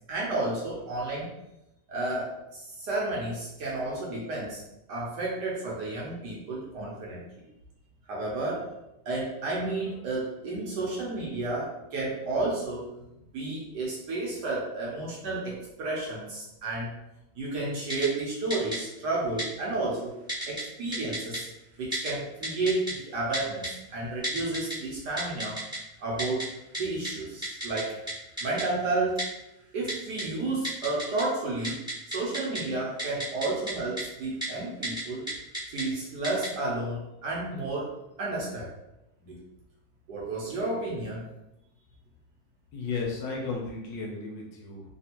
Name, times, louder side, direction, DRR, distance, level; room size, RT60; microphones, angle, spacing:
voice 1, 0.1-1.3 1.9-4.6 4.9-7.4 8.1-8.6 9.0-12.9 13.3-16.9 17.3-20.1 20.5-21.5 21.8-25.6 26.0-26.5 26.8-27.9 28.4-29.3 29.7-35.3 35.7-37.9 38.2-38.7 39.2-39.4 40.1-41.2, right 2 dB, 65° right, -5 dB, 1.2 m, -31 dB
Typing, 17.9-18.1 18.5-18.8 19.4-19.5 20.3-20.6 20.9-21.4 21.9-22.1 22.4-22.9 23.3-23.7 24.2-24.7 25.2-25.8 26.2-26.4 26.7-26.8 27.0-27.1 27.4-27.8 28.1-28.2 28.4-28.6 29.2-29.3 29.9-30.2 30.6-31.2 31.5-32.6 33.0-33.7 34.0-34.1 34.4-34.5 34.8-35.0 35.3-35.8 36.2-36.5, right 1 dB, 5° right, 0.6 m, -32 dB
voice 2, 42.7-44.8, left 4 dB, 70° left, -1 dB, 1.2 m, -34 dB
3.4 x 2.4 x 2.8 m, 0.91 s
omnidirectional pair, 2.2 m